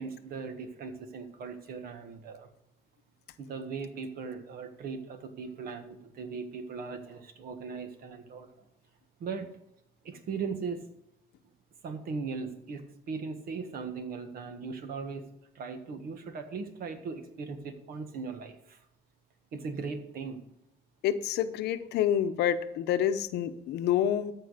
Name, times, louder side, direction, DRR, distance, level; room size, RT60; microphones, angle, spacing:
voice 1, 0.0-2.5 3.4-8.5 9.2-9.6 10.0-10.8 11.8-15.3 15.5-18.8 19.5-20.4, right 5 dB, 60° right, 7 dB, 1.5 m, -38 dB
voice 2, 21.0-24.3, left 10 dB, 80° left, 11 dB, 0.8 m, -28 dB
13.5 x 4.6 x 6.6 m, 0.85 s
cardioid pair, 110°, 17 cm